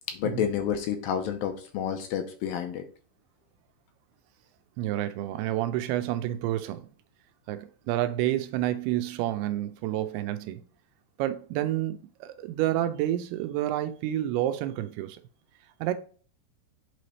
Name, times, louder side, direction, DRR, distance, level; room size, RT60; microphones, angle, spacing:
voice 1, 0.1-2.8, left 9 dB, 80° left, 2.3 m, -30 dB
voice 2, 4.8-6.9 7.5-10.6 11.2-15.2 15.8-15.9, right 13 dB, 85° right, 2.6 m, -29 dB
8.4 x 3.3 x 4.1 m
omnidirectional pair, 4.5 m